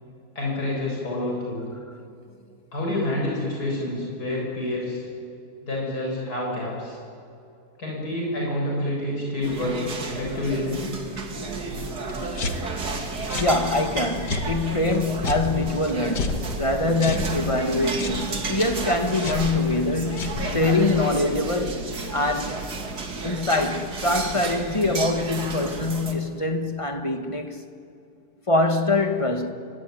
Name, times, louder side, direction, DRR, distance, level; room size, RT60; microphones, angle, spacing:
voice 1, 0.3-1.6 2.7-5.0 5.6-7.0 7.8-10.9, left 1 dB, 65° left, 8.0 m, -28 dB
sound 1, 9.4-26.1, right 4 dB, 70° right, 2.8 m, -33 dB
sound 2, 11.3-16.6 16.9-23.2, right 2 dB, 40° right, 5.9 m, -39 dB
sound 3, 12.1-21.0, left 3 dB, 85° left, 2.2 m, -33 dB
voice 2, 13.4-22.7 23.2-27.6 28.5-29.5, left 2 dB, 20° left, 1.7 m, -24 dB
25.0 x 24.5 x 9.4 m
omnidirectional pair, 1.8 m